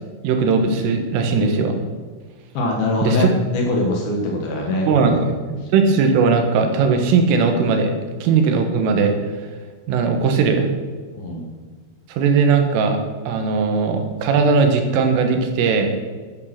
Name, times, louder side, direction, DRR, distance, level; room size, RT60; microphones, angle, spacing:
voice 1, 0.2-1.8 3.0-3.3 4.9-5.2 5.5-7.9 8.2-9.2 9.9-10.7 12.1-13.0 13.3-15.9, right 5 dB, 80° right, 5 dB, 4.0 m, -18 dB
voice 2, 2.5-5.3 11.2-11.5, left 2 dB, 60° left, 0 dB, 2.9 m, -23 dB
12.0 x 11.0 x 6.0 m, 1.5 s
omnidirectional pair, 5.8 m